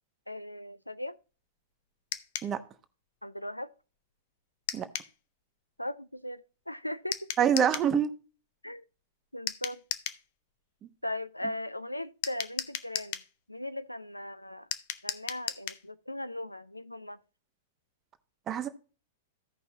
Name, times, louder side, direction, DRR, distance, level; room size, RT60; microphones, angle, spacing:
voice 1, 0.3-1.2 3.2-3.7 5.8-7.3 8.6-8.8 9.3-9.8 11.0-13.2 13.5-14.7 15.0-17.2, left 1 dB, 90° left, 0.5 m, -38 dB
sound 1, 2.1-2.5 4.7-5.1 7.1-7.9 9.5-10.2 12.2-13.3 14.7-15.8, left 12 dB, 45° left, 0.7 m, -36 dB
voice 2, 7.4-8.1 10.8-10.9 18.5-18.7, right 8 dB, 25° right, 1.0 m, -25 dB
15.5 x 5.3 x 2.8 m
figure-of-eight pair, 100°, 0 cm